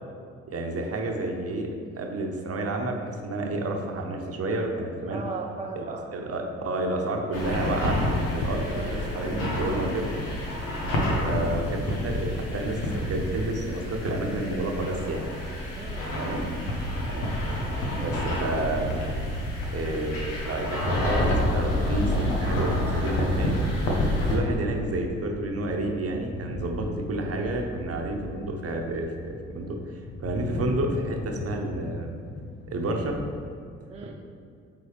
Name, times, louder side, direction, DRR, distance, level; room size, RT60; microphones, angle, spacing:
voice 1, 0.5-5.2 5.8-5.9 6.1-8.0 8.3-10.1 11.3-12.8 13.1-15.3 16.1-16.6 17.1-17.3 18.0-18.9 19.7-23.6 24.2-29.8 30.2-32.1 32.7-33.2 34.0-34.1, right 2 dB, 40° right, 2 dB, 1.1 m, -30 dB
voice 2, 5.1-6.1 8.6-8.9 10.8-11.4 15.8-16.3 33.9-34.1, right 4 dB, 15° right, 0 dB, 0.6 m, -38 dB
sound 1, 7.3-24.4, left 1 dB, 75° left, 1.2 m, -28 dB
sound 2, 18.3-19.5 19.7-19.9 20.2-33.4, left 2 dB, 30° left, 0.9 m, -40 dB
sound 3, 26.5-30.8, right 2 dB, 85° right, 0.8 m, -43 dB
8.6 x 3.9 x 3.4 m, 2.3 s
figure-of-eight pair, 45°, 37 cm